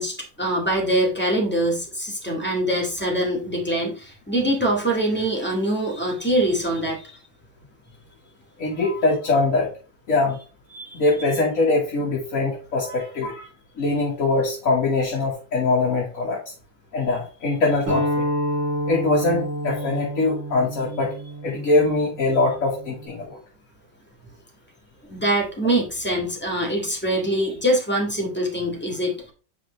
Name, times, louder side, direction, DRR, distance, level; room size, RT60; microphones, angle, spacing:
voice 1, 0.0-7.2 8.8-9.0 10.7-11.0 12.8-13.1 25.1-29.3, right 1 dB, 5° left, -2 dB, 1.8 m, -24 dB
voice 2, 8.6-9.7 10.1-10.4 10.9-13.5 13.8-16.5 16.9-18.2 18.9-21.1 21.4-23.4, left 3 dB, 45° left, -1 dB, 1.6 m, -22 dB
sound 1, 17.9-23.1, equal, 90° right, 3.8 m, -28 dB
8.4 x 4.9 x 3.1 m, 0.36 s
omnidirectional pair, 2.1 m